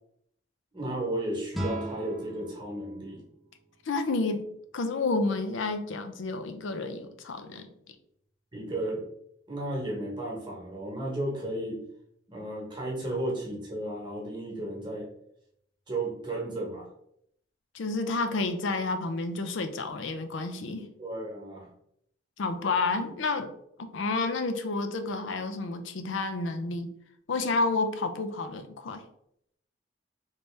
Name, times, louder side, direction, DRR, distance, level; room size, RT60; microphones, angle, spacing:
voice 1, 0.7-3.2 8.5-9.0 9.5-11.8 12.3-15.1 15.9-16.9 21.0-21.7, right 1 dB, 25° right, -2 dB, 1.0 m, -34 dB
sound 1, 1.5-4.5, right 1 dB, ahead, 0.4 m, -38 dB
voice 2, 3.9-7.7 17.7-20.9 22.4-23.5 23.8-26.9 27.3-29.0, left 3 dB, 85° left, 8 dB, 0.5 m, -30 dB
3.3 x 2.7 x 3.2 m, 0.72 s
head